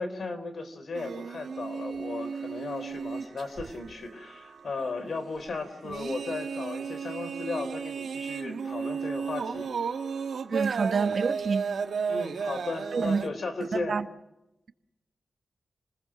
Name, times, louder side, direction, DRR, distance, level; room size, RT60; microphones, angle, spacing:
voice 1, 0.0-9.7 12.1-14.0, left 3 dB, 65° left, 3.8 m, -35 dB
sound 1, 0.9-13.3, right 6 dB, 85° right, 1.5 m, -34 dB
voice 2, 10.5-11.7 12.9-13.2 13.7-14.0, right 5 dB, 60° right, 1.3 m, -27 dB
29.0 x 21.0 x 6.4 m
wide cardioid pair, 80°, 0 cm